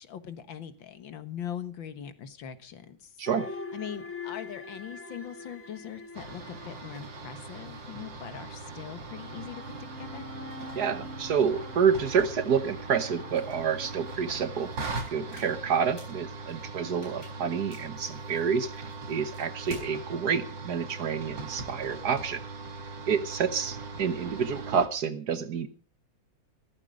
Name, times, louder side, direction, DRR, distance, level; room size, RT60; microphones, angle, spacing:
voice 1, 0.0-3.1 3.7-10.3, left 9 dB, 85° left, 11 dB, 2.2 m, -41 dB
sound 1, 3.2-8.0 8.9-14.2, left 3 dB, 5° left, 2.0 m, -44 dB
sound 2, 6.1-24.9, right 3 dB, 75° right, 3.0 m, -40 dB
voice 2, 10.7-14.7 15.1-22.4 23.1-25.7, right 6 dB, 60° right, 12 dB, 1.7 m, -28 dB
sound 3, 13.3-19.9, equal, 50° left, 8.0 m, -51 dB
15.5 x 14.0 x 5.2 m, 0.36 s
omnidirectional pair, 2.0 m